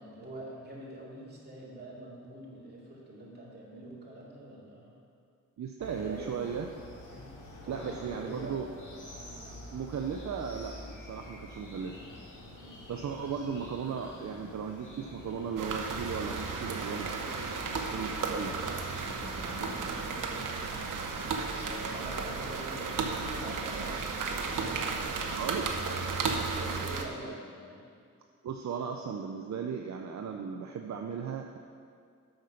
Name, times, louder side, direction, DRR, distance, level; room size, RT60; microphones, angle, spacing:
voice 1, 0.0-5.0 5.9-6.3 7.1-7.4 7.6-8.6 12.5-12.8 19.4-20.4 21.5-26.2 26.5-27.8 28.7-28.9, right 1 dB, 30° right, -5 dB, 2.5 m, -46 dB
voice 2, 5.6-6.7 7.7-8.7 9.7-12.0 12.9-17.3 17.9-18.7 25.2-25.8 28.4-31.6, right 6 dB, 60° right, 3 dB, 0.6 m, -36 dB
sound 1, 5.8-19.8, left 1 dB, 80° left, 1.9 m, -47 dB
sound 2, 15.6-27.0, right 4 dB, 80° right, 0.9 m, -34 dB
7.8 x 6.6 x 5.7 m, 2.3 s
cardioid pair, 80°, 31 cm